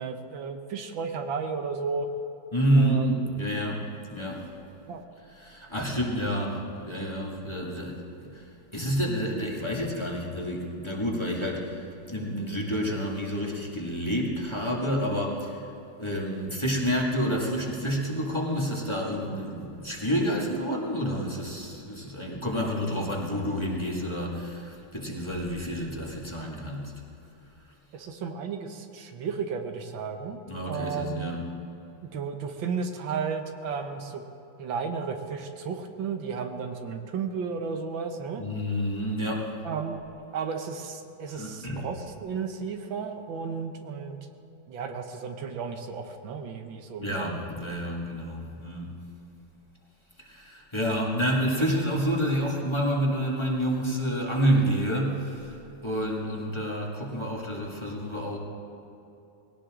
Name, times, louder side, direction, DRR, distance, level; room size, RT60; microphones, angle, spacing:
voice 1, 0.0-2.1 2.8-3.1 4.9-5.0 27.9-31.3 32.1-34.2 34.6-38.4 39.6-40.0 40.3-44.2 44.7-47.5, right 5 dB, 85° right, 5 dB, 1.9 m, -33 dB
voice 2, 2.5-4.5 5.4-8.5 8.7-15.6 16.0-26.9 30.5-31.4 38.4-39.5 41.3-41.8 47.0-49.0 50.2-55.6 55.8-58.4, equal, 15° left, -3 dB, 2.0 m, -29 dB
20.0 x 17.5 x 3.8 m, 2.9 s
omnidirectional pair, 2.0 m